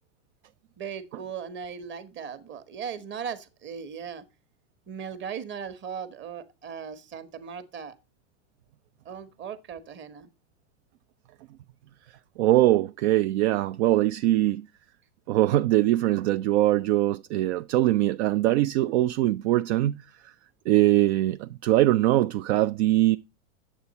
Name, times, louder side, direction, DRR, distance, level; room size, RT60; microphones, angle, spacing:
voice 1, 0.8-4.2 4.9-7.9 9.0-10.3, right 7 dB, 30° right, 1.3 m, -38 dB
voice 2, 12.4-14.7 15.3-20.3 20.7-23.2, right 15 dB, 60° right, 0.5 m, -22 dB
9.3 x 7.2 x 4.1 m
hypercardioid pair, 115°, 39 cm